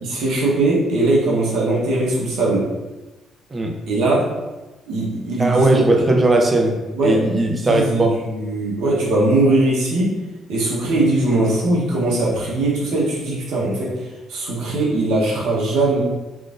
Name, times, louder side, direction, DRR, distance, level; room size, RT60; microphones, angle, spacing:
voice 1, 0.0-2.6 3.9-4.3 4.9-5.8 6.9-7.2 7.4-10.1 10.5-14.0 14.3-16.0, right 2 dB, 85° right, -4 dB, 1.0 m, -20 dB
voice 2, 5.4-8.2, right 1 dB, 25° right, 2 dB, 0.5 m, -18 dB
3.7 x 2.4 x 2.5 m, 1.1 s
cardioid pair, 110°, 0 cm